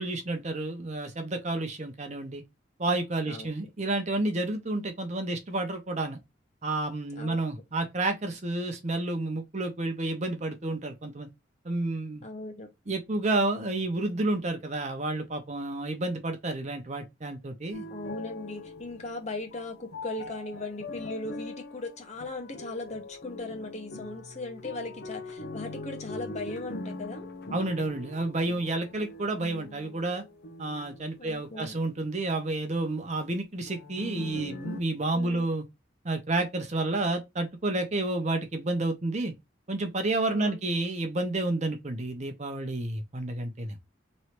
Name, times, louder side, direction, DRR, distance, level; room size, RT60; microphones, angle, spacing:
voice 1, 0.0-2.4 2.8-6.2 6.6-11.3 11.6-12.2 12.9-17.8 27.5-30.2 30.6-35.6 36.0-39.3 39.7-43.8, right 2 dB, 35° right, 0.8 m, -30 dB
voice 2, 12.2-12.7 17.9-27.3 31.2-31.7 35.1-35.5 40.3-40.6, left 2 dB, 35° left, 0.9 m, -38 dB
sound 1, 17.7-32.3 33.7-34.8, left 2 dB, 55° left, 0.6 m, -42 dB
3.2 x 2.7 x 4.3 m
head